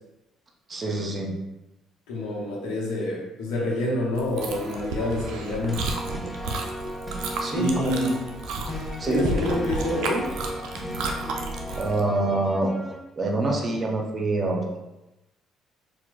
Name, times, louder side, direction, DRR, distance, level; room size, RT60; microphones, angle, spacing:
voice 1, 0.7-1.3 7.4-8.2 9.0-9.3 11.8-12.7 13.2-14.8, right 2 dB, 30° right, 1 dB, 0.7 m, -26 dB
voice 2, 2.1-5.9 7.5-8.2 9.1-10.3, left 1 dB, 65° left, -3 dB, 0.8 m, -27 dB
Chewing mastication, 4.1-12.0, right 3 dB, 60° right, 0.4 m, -32 dB
sound 1, 4.4-13.0, equal, 5° left, 0.7 m, -36 dB
sound 2, 8.7-9.2, left 3 dB, 40° left, 1.3 m, -36 dB
4.4 x 2.1 x 2.4 m, 0.95 s
figure-of-eight pair, 50°, 0 cm